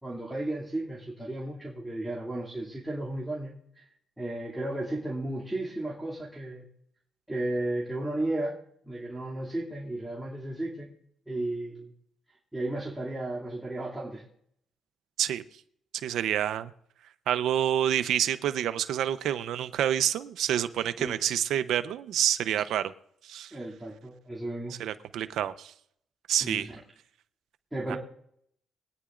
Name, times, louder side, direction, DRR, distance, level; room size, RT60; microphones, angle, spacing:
voice 1, 0.0-3.9 4.2-6.7 7.3-10.9 11.3-11.9 12.5-14.2 21.0-21.1 23.5-24.7 26.4-26.7 27.7-28.0, right 1 dB, 10° right, 2.6 m, -34 dB
voice 2, 15.9-16.7 17.3-22.9 23.2-23.5 24.8-25.7 26.3-26.7 27.9-28.0, right 10 dB, 75° right, 0.8 m, -28 dB
22.5 x 9.7 x 2.5 m
cardioid pair, 80°, 0 cm